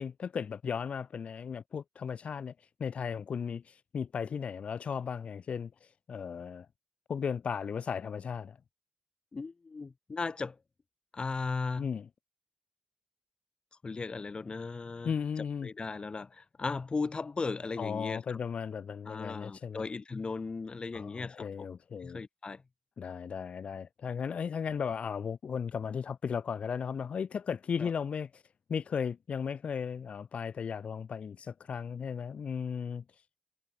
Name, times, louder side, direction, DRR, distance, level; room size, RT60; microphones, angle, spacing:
voice 1, 0.0-2.5 2.8-5.7 6.1-6.7 7.1-8.6 11.8-12.1 15.0-15.7 17.8-19.8 20.9-22.2 23.0-28.4 28.7-33.0, left 6 dB, 75° left, 1.5 m, -36 dB
voice 2, 9.3-10.6 11.1-11.9 13.8-18.4 19.0-21.7 22.0-22.6 27.8-27.9, left 4 dB, 50° left, 1.6 m, -37 dB
cardioid pair, 55°, 2 cm